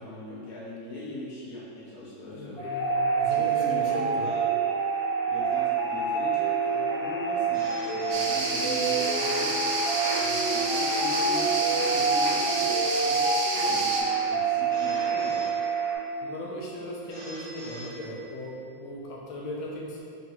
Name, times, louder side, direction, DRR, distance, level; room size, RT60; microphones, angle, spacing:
voice 1, 0.0-2.7 3.3-4.5 5.3-9.7 10.5-15.5, left 1 dB, 60° left, -7 dB, 1.4 m, -40 dB
voice 2, 2.3-4.3 10.2-10.4 16.2-20.0, left 1 dB, 85° left, -2 dB, 1.4 m, -38 dB
sound 1, 2.6-16.0, right 5 dB, 40° left, 0.9 m, -27 dB
Telephone, 7.5-9.0 9.9-11.4 12.3-13.8 14.7-16.2 17.1-18.6, equal, 45° right, 0.8 m, -44 dB
sound 2, 8.1-14.0, right 2 dB, 75° right, 1.3 m, -30 dB
3.8 x 2.3 x 4.2 m, 2.4 s
omnidirectional pair, 2.2 m